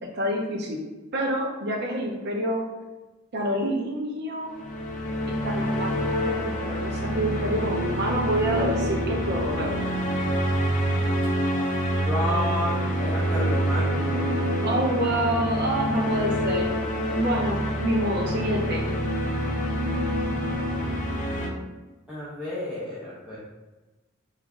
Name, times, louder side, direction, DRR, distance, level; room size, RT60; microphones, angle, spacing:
voice 1, 0.0-0.8 1.1-2.7 3.3-4.6 5.3-9.7 14.6-16.8 17.1-18.9, right 1 dB, 55° right, 1 dB, 0.6 m, -27 dB
sound 1, 4.5-21.5, equal, 40° left, 0.5 m, -26 dB
voice 2, 11.9-14.3 22.1-23.4, equal, 5° right, -9 dB, 0.6 m, -31 dB
3.0 x 2.4 x 3.5 m, 1.2 s
head